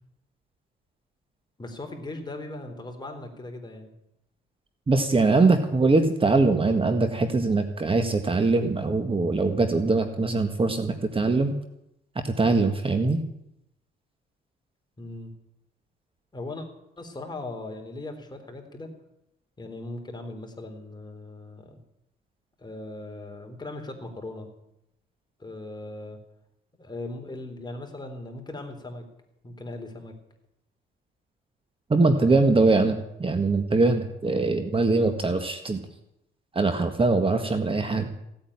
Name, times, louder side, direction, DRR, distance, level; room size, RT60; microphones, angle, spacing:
voice 1, 1.6-3.9 15.0-15.3 16.3-16.7 17.0-18.9 19.6-21.8 22.6-24.5 25.4-26.2 26.8-29.1 29.4-30.1 32.0-32.7, left 2 dB, 20° left, 3 dB, 3.8 m, -39 dB
voice 2, 4.9-11.5 12.4-13.2 31.9-35.8 36.5-38.1, right 3 dB, 25° right, 7 dB, 1.8 m, -22 dB
16.5 x 8.8 x 9.9 m, 0.83 s
cardioid pair, 90°, 20 cm